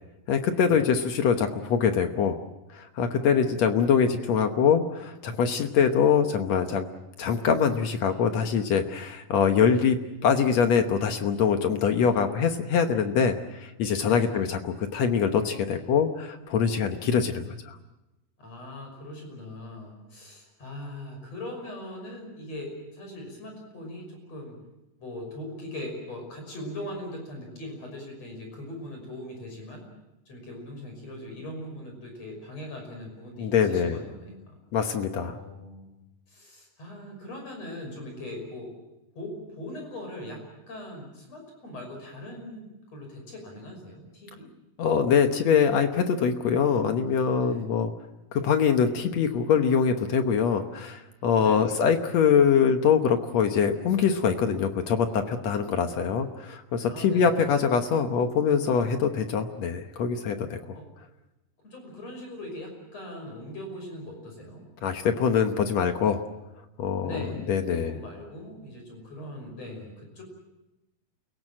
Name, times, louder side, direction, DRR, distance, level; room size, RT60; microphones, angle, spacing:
voice 1, 0.3-2.4 2.7-6.9 7.2-10.0 10.2-17.8 33.4-34.0 34.7-35.4 44.8-47.9 48.3-60.8 64.8-66.2 66.8-67.9, left 7 dB, 65° left, 7 dB, 2.0 m, -24 dB
voice 2, 14.0-14.4 18.4-24.6 25.0-29.8 30.3-34.5 35.2-35.9 36.3-38.7 39.2-44.5 47.4-47.7 51.4-51.7 56.9-57.5 60.7-60.9 61.6-64.6 67.0-70.2, left 1 dB, 45° left, 2 dB, 7.0 m, -40 dB
29.0 x 17.5 x 7.6 m, 0.97 s
omnidirectional pair, 4.0 m